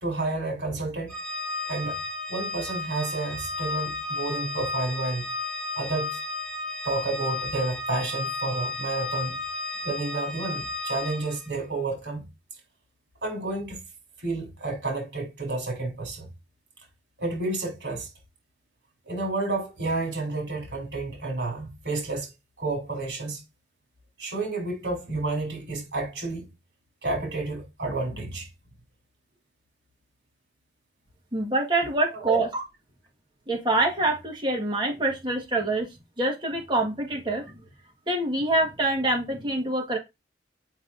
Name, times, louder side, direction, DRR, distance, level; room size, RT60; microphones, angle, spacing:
voice 1, 0.0-1.2 1.7-2.0 2.3-5.2 5.8-6.2 6.8-9.4 9.8-12.3 13.2-13.8 14.2-16.3 17.2-18.1 19.1-22.3 22.6-23.4 24.2-26.5 27.0-28.5 32.1-32.4, right 2 dB, 70° right, 3.5 m, -30 dB
Organ, 1.1-11.5, left 3 dB, 5° left, 1.8 m, -33 dB
voice 2, 31.3-32.6 33.5-35.9 36.2-37.4 38.1-40.0, right 2 dB, 25° right, 1.6 m, -25 dB
7.3 x 5.2 x 2.6 m
head